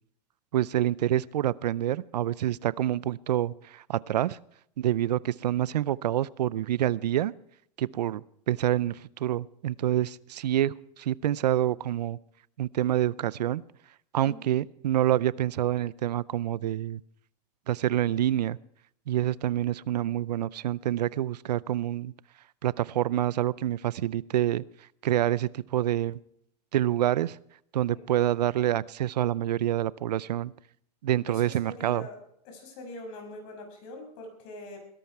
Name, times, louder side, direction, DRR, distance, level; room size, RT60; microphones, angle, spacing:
voice 1, 0.5-4.4 4.8-7.3 7.8-12.2 12.6-13.6 14.1-17.0 17.7-18.6 19.1-22.1 22.6-24.6 25.0-26.2 26.7-27.4 27.7-30.5 31.0-32.1, right 12 dB, 90° right, 0.5 m, -27 dB
voice 2, 31.3-32.2 32.4-34.8, left 2 dB, 55° left, 6.3 m, -43 dB
20.5 x 11.5 x 4.7 m
hypercardioid pair, 130°, 21 cm